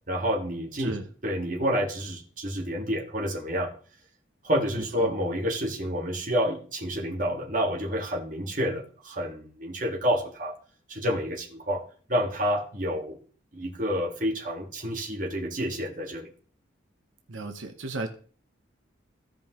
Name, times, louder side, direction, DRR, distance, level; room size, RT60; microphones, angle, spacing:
voice 1, 0.1-1.0 1.2-3.7 4.4-10.5 10.9-11.8 12.1-13.2 13.5-16.3, equal, 40° right, 1 dB, 1.8 m, -29 dB
voice 2, 4.7-5.1 17.3-18.1, right 2 dB, 90° right, 5 dB, 1.1 m, -35 dB
15.5 x 5.3 x 3.0 m, 0.41 s
head